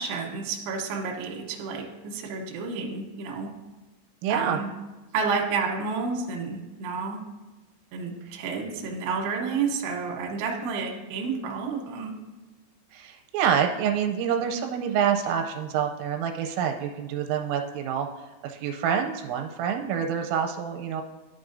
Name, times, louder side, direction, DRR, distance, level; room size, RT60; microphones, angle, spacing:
voice 1, 0.0-3.5 4.3-4.7 5.1-7.2 7.9-12.1, right 5 dB, 70° right, 0 dB, 2.7 m, -30 dB
voice 2, 4.2-4.6 8.3-8.4 12.9-18.1 18.4-21.0, right 8 dB, 90° right, 3 dB, 3.2 m, -27 dB
12.0 x 6.1 x 2.6 m, 1.1 s
omnidirectional pair, 5.8 m